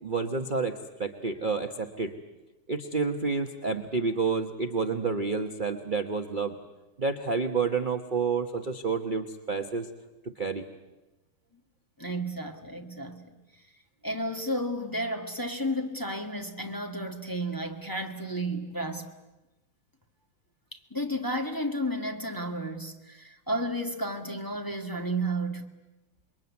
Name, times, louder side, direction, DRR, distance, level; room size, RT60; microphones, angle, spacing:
voice 1, 0.0-2.1 2.7-6.6 7.0-9.9 10.2-10.6, right 4 dB, 35° right, 0.9 m, -29 dB
voice 2, 12.0-13.4 14.0-19.1 20.7-25.7, right 1 dB, 10° left, 1.5 m, -32 dB
27.5 x 22.0 x 9.5 m
omnidirectional pair, 2.3 m